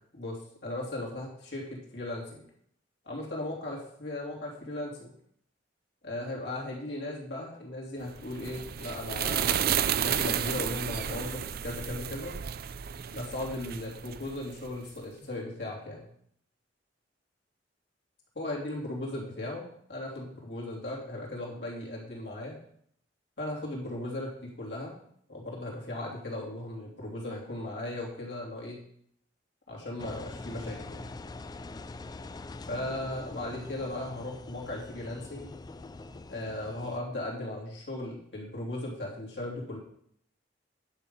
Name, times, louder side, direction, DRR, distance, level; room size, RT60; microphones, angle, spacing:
voice 1, 0.1-2.4 3.0-5.1 6.0-12.3 13.1-16.1 18.3-22.5 23.4-25.0 25.3-28.8 29.7-31.1 32.7-35.5 36.3-39.8, left 1 dB, 70° left, -3 dB, 3.1 m, -37 dB
sound 1, 8.2-14.8, right 9 dB, 55° right, 0.4 m, -32 dB
Engine, 30.0-37.0, left 2 dB, 20° left, 0.3 m, -44 dB
10.5 x 5.8 x 5.4 m, 0.67 s
head